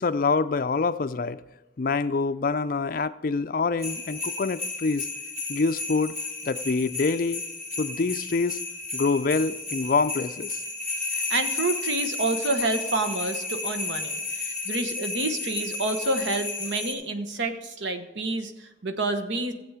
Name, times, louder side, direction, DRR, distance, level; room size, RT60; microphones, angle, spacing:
voice 1, 0.0-1.4 1.8-5.1 5.5-6.1 6.4-7.4 7.8-8.6 8.9-10.6, left 4 dB, 50° left, 13 dB, 0.4 m, -26 dB
sound 1, 3.8-16.9, left 3 dB, 15° right, 3.0 m, -33 dB
voice 2, 11.3-18.5 18.8-19.5, right 2 dB, 85° right, 8 dB, 1.1 m, -28 dB
14.5 x 8.0 x 4.9 m, 1.1 s
head